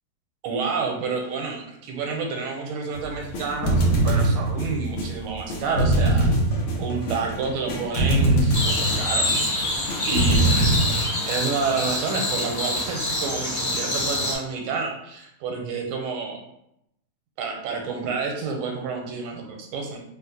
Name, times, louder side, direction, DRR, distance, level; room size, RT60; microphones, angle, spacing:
voice 1, 0.4-6.3 6.8-9.3 10.0-16.4 17.4-20.0, right 5 dB, 85° right, 1 dB, 1.5 m, -29 dB
sound 1, 2.9-11.1, right 1 dB, 80° left, 1.6 m, -23 dB
sound 2, 8.5-14.3, left 1 dB, 35° left, 1.0 m, -26 dB
3.7 x 2.4 x 2.6 m, 0.80 s
omnidirectional pair, 2.4 m